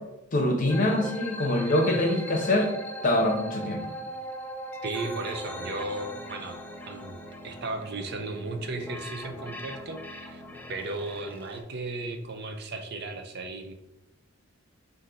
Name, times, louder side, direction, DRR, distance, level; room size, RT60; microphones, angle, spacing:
voice 1, 0.3-2.7 3.0-3.9, left 1 dB, 40° left, 3 dB, 0.8 m, -24 dB
sound 1, 0.7-11.6, equal, 10° left, 0.4 m, -40 dB
voice 2, 4.8-6.6 6.9-7.2 7.4-10.4 10.7-13.7, right 3 dB, 50° right, 5 dB, 0.5 m, -35 dB
5.2 x 2.6 x 3.8 m, 0.92 s
head